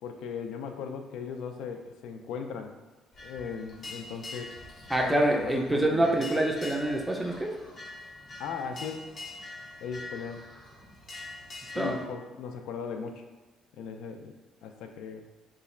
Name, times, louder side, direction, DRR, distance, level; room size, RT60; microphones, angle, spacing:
voice 1, 0.0-2.7 3.2-4.6 5.0-6.2 8.4-9.1 9.8-10.4 11.7-13.2 13.8-14.3 14.6-15.2, left 6 dB, 80° left, 5 dB, 0.4 m, -38 dB
sound 1, 3.1-12.0, left 2 dB, 35° left, 0.6 m, -44 dB
voice 2, 4.9-7.5 11.7-12.0, right 1 dB, 5° right, 0 dB, 0.4 m, -26 dB
2.9 x 2.4 x 4.2 m, 1.3 s
cardioid pair, 170°, 0 cm